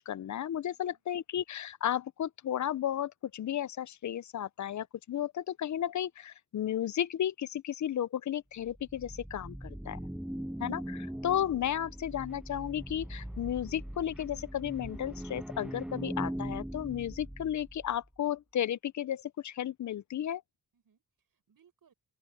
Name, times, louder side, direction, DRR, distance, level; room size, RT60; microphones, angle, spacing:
voice 1, 0.1-10.0 10.6-20.4, left 10 dB, 50° left, 0.5 m, -33 dB
voice 2, 0.7-1.0 10.2-10.6 20.7-21.9, right 8 dB, 65° right, 7.2 m, -69 dB
sound 1, 8.6-18.0, right 1 dB, ahead, 0.7 m, -40 dB
open air
wide cardioid pair, 110°, 37 cm